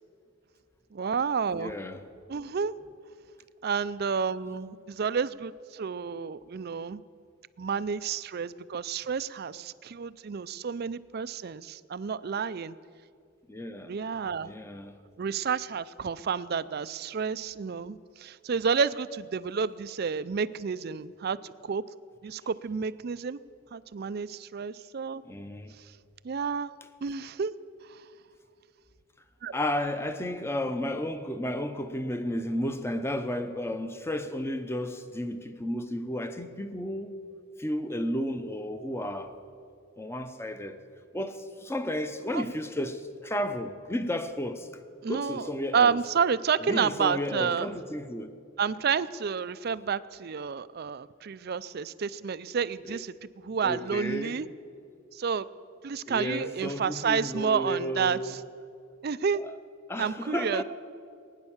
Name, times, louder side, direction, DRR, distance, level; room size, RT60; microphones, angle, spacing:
voice 1, 0.9-1.7 2.3-2.7 3.6-7.0 7.6-12.8 13.9-14.5 15.2-21.8 22.2-23.4 23.7-25.2 25.8-25.9 26.2-26.7 27.0-27.5 27.8-28.0 29.4-29.6 42.3-42.4 45.0-47.8 48.6-53.1 53.4-54.5 55.1-55.5 55.8-58.4 59.0-59.4 60.0-60.6, right 6 dB, 50° right, 0.4 m, -30 dB
voice 2, 1.5-2.0 13.5-13.9 14.4-14.9 25.2-25.7 29.5-37.1 37.6-39.4 40.0-40.8 41.1-44.7 45.1-46.0 46.7-48.3 52.9-53.0 53.6-54.5 56.1-58.3 59.3-59.5 59.9-60.6, left 1 dB, 10° left, 0.8 m, -33 dB
20.5 x 9.8 x 7.2 m
head